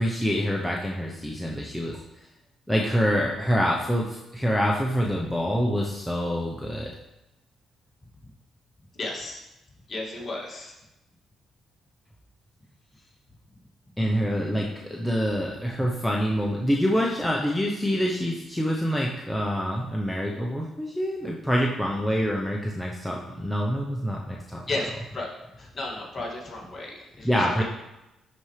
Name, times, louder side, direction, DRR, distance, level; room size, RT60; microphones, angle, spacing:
voice 1, 0.0-2.0 2.7-6.9 14.0-24.6 27.2-27.6, equal, ahead, -2 dB, 0.9 m, -26 dB
voice 2, 8.9-9.4 9.9-10.7 24.7-25.3 25.6-27.6, left 2 dB, 35° left, -3 dB, 2.2 m, -34 dB
11.5 x 4.5 x 3.3 m, 0.94 s
cardioid pair, 90°, 0 cm